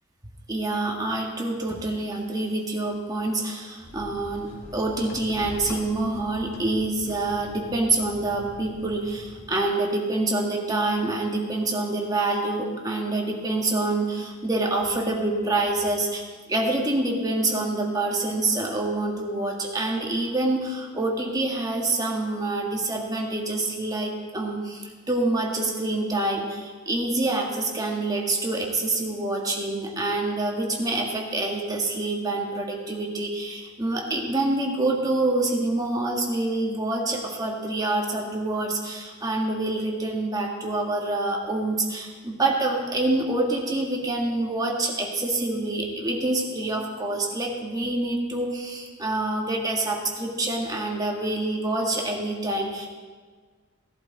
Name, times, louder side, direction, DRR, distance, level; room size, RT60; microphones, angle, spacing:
voice 1, 0.5-16.2 16.5-52.9, right 2 dB, 20° right, -1 dB, 1.8 m, -26 dB
sound 1, 3.8-9.6, equal, 80° left, 1.5 m, -43 dB
17.0 x 11.0 x 4.2 m, 1.5 s
head